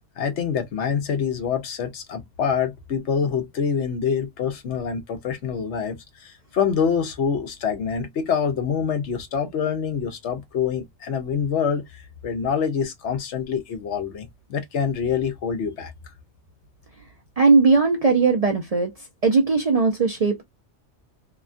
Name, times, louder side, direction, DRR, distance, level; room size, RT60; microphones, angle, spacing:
voice 1, 0.2-15.9, left 7 dB, 75° left, 1.0 m, -26 dB
voice 2, 17.4-18.9 19.2-20.4, right 4 dB, 50° right, 0.5 m, -18 dB
2.8 x 2.2 x 2.4 m
omnidirectional pair, 1.2 m